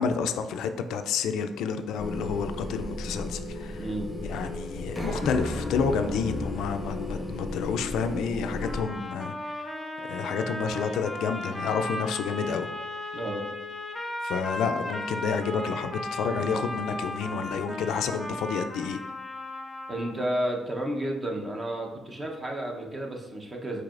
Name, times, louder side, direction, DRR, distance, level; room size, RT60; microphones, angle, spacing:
voice 1, 0.0-3.9 4.2-9.7 10.0-12.7 14.2-19.0, left 6 dB, 85° left, 8 dB, 0.3 m, -30 dB
sound 1, 2.0-8.8, left 2 dB, 10° right, 1.4 m, -34 dB
voice 2, 3.8-4.1 13.1-13.5 19.9-23.8, right 1 dB, 30° right, 1 dB, 0.8 m, -31 dB
sound 2, 8.6-20.3, left 1 dB, 5° left, 0.7 m, -36 dB
4.7 x 4.6 x 2.5 m, 1.1 s
cardioid pair, 90°, 0 cm